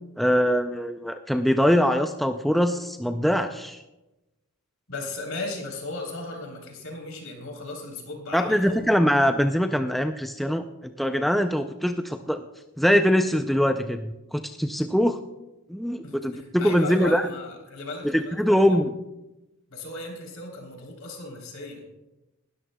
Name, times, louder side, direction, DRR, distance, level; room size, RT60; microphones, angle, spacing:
voice 1, 0.2-3.8 8.3-12.4 12.8-15.2 15.7-17.3 18.0-18.9, equal, ahead, 6 dB, 0.3 m, -23 dB
voice 2, 4.9-8.9 16.0-18.8 19.7-21.8, left 2 dB, 70° left, 1 dB, 3.3 m, -36 dB
19.0 x 13.0 x 2.2 m, 0.99 s
head